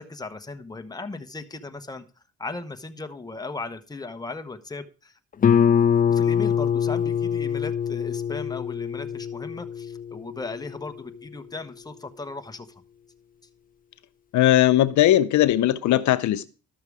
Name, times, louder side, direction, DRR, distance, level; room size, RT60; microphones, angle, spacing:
voice 1, 0.0-2.0 2.4-5.1 6.1-12.8, left 3 dB, 15° left, 1.1 m, -37 dB
Guitar, 5.4-10.8, left 8 dB, 30° left, 0.5 m, -24 dB
voice 2, 14.3-16.5, left 13 dB, 70° left, 0.6 m, -19 dB
12.5 x 6.6 x 4.8 m
cardioid pair, 90°, 30 cm